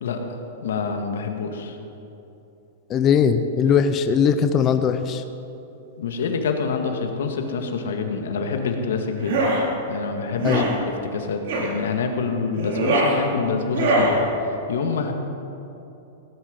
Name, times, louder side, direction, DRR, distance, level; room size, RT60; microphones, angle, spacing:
voice 1, 0.0-1.8 6.0-9.5 9.9-14.2 14.7-15.1, left 5 dB, 85° left, 4 dB, 1.9 m, -27 dB
voice 2, 2.9-5.2 10.4-10.7, left 7 dB, 25° left, 8 dB, 0.6 m, -20 dB
sound 1, 9.2-9.6 10.4-10.7 11.5-11.7 12.5-13.1 13.7-14.1, right 2 dB, 60° right, 4.2 m, -22 dB
17.5 x 11.0 x 5.4 m, 2.9 s
supercardioid pair, 155°, 0 cm